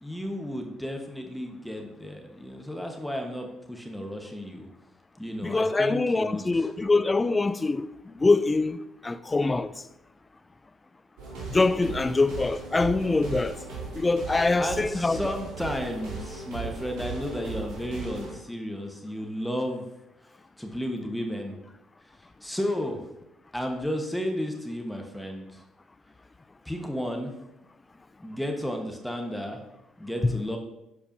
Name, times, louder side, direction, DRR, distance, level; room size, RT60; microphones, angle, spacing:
voice 1, 0.0-4.7 5.2-6.7 14.6-19.9 20.6-21.6 22.4-23.0 23.5-25.6 26.6-27.3 28.2-29.6 30.0-30.6, equal, 5° left, 1.1 m, -33 dB
voice 2, 5.4-9.7 11.5-13.6 13.9-15.4 30.2-30.4, left 3 dB, 25° left, 0.4 m, -24 dB
sound 1, 11.2-18.4, right 4 dB, 70° right, 2.5 m, -38 dB
9.9 x 4.8 x 2.6 m
hypercardioid pair, 55°, 0 cm